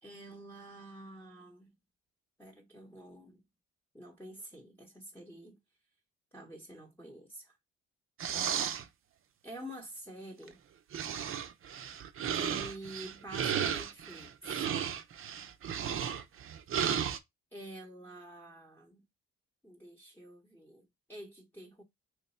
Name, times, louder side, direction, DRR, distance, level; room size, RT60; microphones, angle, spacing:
voice 1, 0.0-1.7 2.4-3.4 3.9-5.6 6.3-7.6 9.4-10.6 12.3-14.6 17.5-19.0 19.6-21.8, right 1 dB, 5° left, 0.9 m, -48 dB
sound 1, 8.2-8.8 10.5-10.6 10.9-17.2, right 8 dB, 45° right, 0.5 m, -34 dB
3.1 x 2.1 x 4.2 m
cardioid pair, 90°, 30 cm